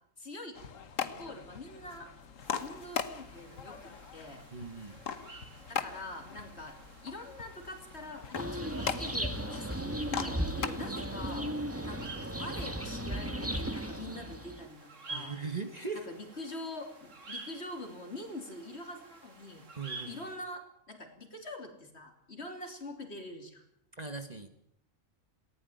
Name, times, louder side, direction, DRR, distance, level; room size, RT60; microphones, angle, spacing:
voice 1, 0.2-0.6 1.0-2.1 2.6-4.5 5.7-6.8 7.0-11.5 11.8-15.4 15.9-19.6 20.1-23.6, left 1 dB, 50° left, 4 dB, 3.4 m, -45 dB
sound 1, 0.5-11.4, left 7 dB, 70° left, 1.6 m, -40 dB
sound 2, 2.4-20.4, right 3 dB, 65° right, 2.8 m, -51 dB
voice 2, 4.5-5.0 15.1-16.1 17.3-17.4 19.7-20.2 23.9-24.5, right 4 dB, 30° right, 8 dB, 1.4 m, -39 dB
sound 3, 8.3-14.7, right 1 dB, 10° right, 1.7 m, -36 dB
18.5 x 16.0 x 9.3 m, 0.75 s
omnidirectional pair, 1.4 m